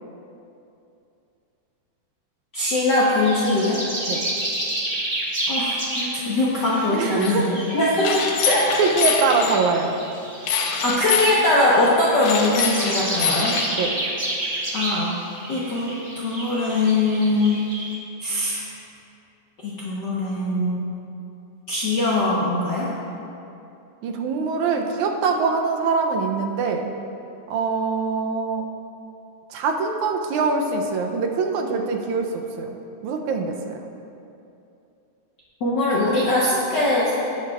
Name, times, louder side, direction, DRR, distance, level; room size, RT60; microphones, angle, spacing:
voice 1, 2.5-3.8 5.5-7.5 7.7-8.7 10.8-13.6 14.7-15.2 15.5-17.6 18.2-18.6 19.6-20.9 21.7-22.9 35.6-37.2, left 2 dB, 60° left, -8 dB, 1.1 m, -21 dB
sound 1, 2.8-17.9, right 1 dB, 25° right, 1.3 m, -31 dB
voice 2, 6.9-7.5 8.8-10.0 13.8-14.0 24.0-26.9 27.5-28.7 29.5-32.8 33.0-33.8, right 4 dB, 80° right, 3 dB, 2.0 m, -23 dB
sound 2, 7.2-7.3 8.0-9.6 10.5-11.3 12.1-13.6, left 6 dB, 75° left, 2.2 m, -24 dB
16.5 x 8.0 x 2.4 m, 2.7 s
omnidirectional pair, 3.5 m